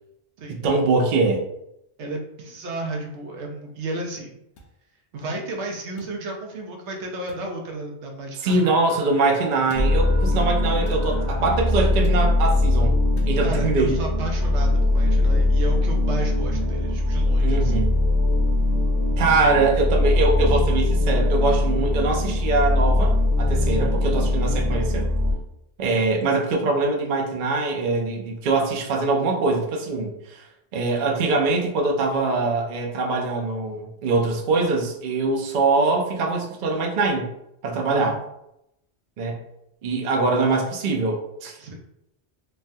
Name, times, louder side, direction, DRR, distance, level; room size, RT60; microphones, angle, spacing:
voice 1, 0.5-1.4 8.4-13.0 13.2-14.0 17.4-17.9 19.2-25.1 25.8-30.5 30.7-37.3 37.6-38.2 39.2-39.4 39.8-41.7, right 3 dB, 60° right, 1 dB, 0.6 m, -23 dB
voice 2, 2.0-4.4 5.1-8.7 13.4-17.9 19.4-19.6 37.8-38.2 41.6-41.7, right 2 dB, 85° right, 1 dB, 0.9 m, -33 dB
sound 1, 4.6-4.7 6.0-6.2 7.3-7.5 8.5-8.7 9.7-9.9 10.9-11.1 12.0-12.3 13.2-13.4, left 2 dB, 65° left, 0.8 m, -44 dB
Screaming, 8.4-12.0, equal, 35° left, 0.7 m, -42 dB
sound 2, 9.8-25.3, left 2 dB, 40° right, 0.9 m, -21 dB
3.2 x 2.2 x 2.6 m, 0.82 s
omnidirectional pair, 1.1 m